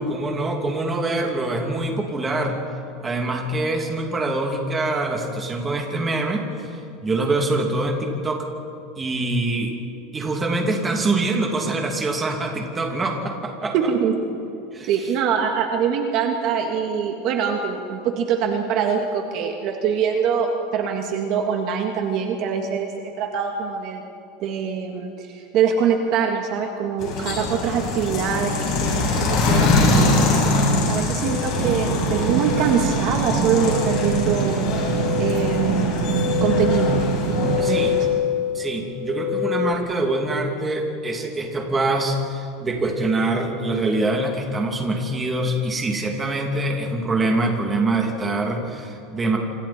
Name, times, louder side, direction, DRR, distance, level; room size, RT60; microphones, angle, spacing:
voice 1, 0.1-2.6 3.0-6.8 7.0-8.5 9.0-9.7 10.1-13.7 14.7-14.9 37.6-37.9 38.5-49.4, right 2 dB, 15° right, 1 dB, 2.8 m, -24 dB
voice 2, 13.7-14.2 14.8-24.0 24.4-30.4 30.9-34.9 35.2-36.1 36.4-37.0 37.4-38.0, right 7 dB, 45° right, 3 dB, 1.9 m, -24 dB
sound 1, 27.0-38.0, left 2 dB, 40° left, 7.7 m, -23 dB
sound 2, 31.2-39.7, left 10 dB, 55° left, 1.0 m, -27 dB
sound 3, 31.5-37.6, right 7 dB, 85° right, 2.3 m, -25 dB
27.5 x 26.5 x 4.4 m, 2.7 s
supercardioid pair, 160°, 0 cm